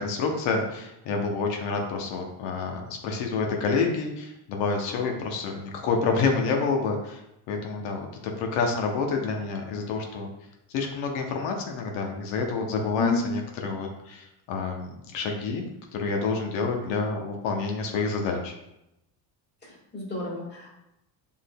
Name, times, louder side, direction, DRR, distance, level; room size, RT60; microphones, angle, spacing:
voice 1, 0.0-7.2 7.5-10.3 10.7-15.6 15.9-18.6, left 4 dB, 90° left, 2 dB, 0.8 m, -28 dB
voice 2, 19.6-20.7, left 4 dB, 25° left, -3 dB, 1.6 m, -29 dB
6.2 x 3.6 x 2.2 m, 0.88 s
cardioid pair, 130°, 44 cm